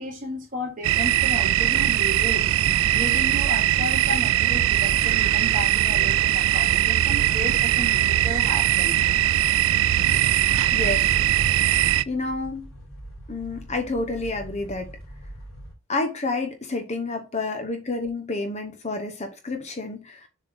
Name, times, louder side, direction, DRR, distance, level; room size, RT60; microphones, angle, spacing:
voice 1, 0.0-2.5 2.9-9.0, equal, 40° right, 3.2 m, -33 dB
sound 1, 0.8-12.0, right 12 dB, 70° right, 0.3 m, -21 dB
sound 2, 6.4-15.7, equal, 85° left, 2.9 m, -43 dB
voice 2, 10.7-11.2 12.1-12.7 13.3-14.9 15.9-20.3, left 2 dB, 35° left, 1.0 m, -29 dB
7.0 x 3.7 x 3.8 m
head